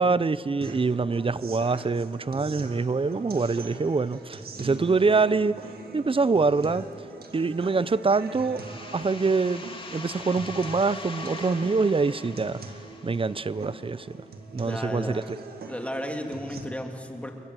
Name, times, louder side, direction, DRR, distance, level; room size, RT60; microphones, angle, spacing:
voice 1, 0.0-5.6 5.9-6.9 7.3-8.6 8.9-9.6 9.9-12.8 13.0-14.2 14.5-15.4, right 4 dB, 35° right, 0.7 m, -25 dB
sound 1, 0.6-16.6, right 3 dB, 90° right, 2.0 m, -43 dB
sound 2, 8.6-14.1, left 3 dB, 35° left, 2.4 m, -42 dB
voice 2, 14.5-15.3 15.7-17.3, equal, 10° left, 2.7 m, -34 dB
29.0 x 21.5 x 7.7 m
cardioid pair, 60°, 15 cm